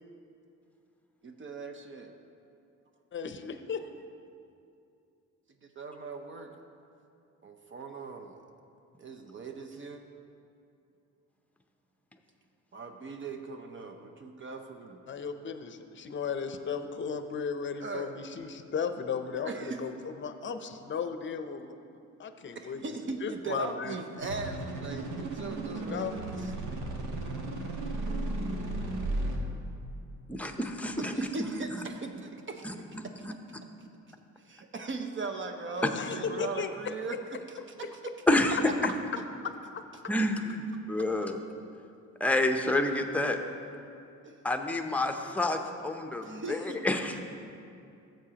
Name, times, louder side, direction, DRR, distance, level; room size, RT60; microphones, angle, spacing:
voice 1, 1.2-2.1 5.6-6.5 7.4-8.4 9.0-10.0 12.7-15.0 17.8-18.1 19.4-19.8 22.5-26.5 31.1-32.7 34.4-38.0 39.2-39.3 44.2-44.4 46.2-46.8 47.1-47.2, right 3 dB, 40° right, 5 dB, 0.7 m, -39 dB
voice 2, 3.1-3.9 15.1-19.5 19.8-21.7 22.2-22.8 23.2-23.9 25.7-26.1 35.9-36.7, left 6 dB, 40° left, 9 dB, 0.6 m, -35 dB
sound 1, 24.2-29.4, right 2 dB, 80° right, 1.2 m, -34 dB
voice 3, 30.3-31.3 32.6-33.3 38.3-38.6 40.1-40.6 40.9-41.4 42.2-43.4 44.4-47.2, left 2 dB, 5° left, 4 dB, 0.7 m, -29 dB
14.0 x 7.6 x 2.9 m, 2.5 s
cardioid pair, 90°, 30 cm